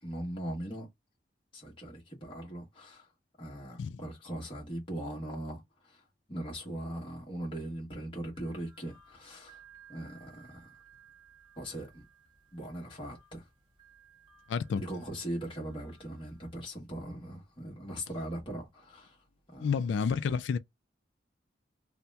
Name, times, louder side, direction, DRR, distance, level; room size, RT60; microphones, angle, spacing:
voice 1, 0.0-0.9 1.5-3.1 3.4-9.6 9.9-10.7 11.6-12.0 12.5-13.5 14.7-19.2 19.5-19.7, right 1 dB, 30° left, 1.0 m, -40 dB
sound 1, 8.3-16.7, right 7 dB, 25° right, 1.0 m, -60 dB
voice 2, 14.5-14.8 19.6-20.6, left 6 dB, 80° left, 0.3 m, -30 dB
2.8 x 2.0 x 3.4 m
head